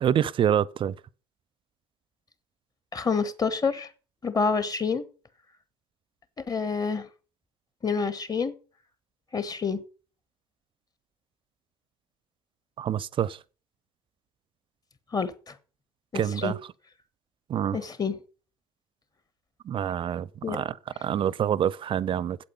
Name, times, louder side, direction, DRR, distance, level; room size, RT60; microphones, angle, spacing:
voice 1, 0.0-0.9 12.8-13.4 16.1-16.6 17.5-17.8 19.7-22.4, right 9 dB, 40° right, 0.5 m, -26 dB
voice 2, 2.9-3.9 4.2-5.1 6.5-7.1 7.8-8.5 9.3-9.8 15.1-15.5 16.1-16.5 17.7-18.1 20.4-20.6, left 5 dB, 25° left, 1.3 m, -27 dB
8.4 x 8.2 x 5.6 m
figure-of-eight pair, 60°, 14 cm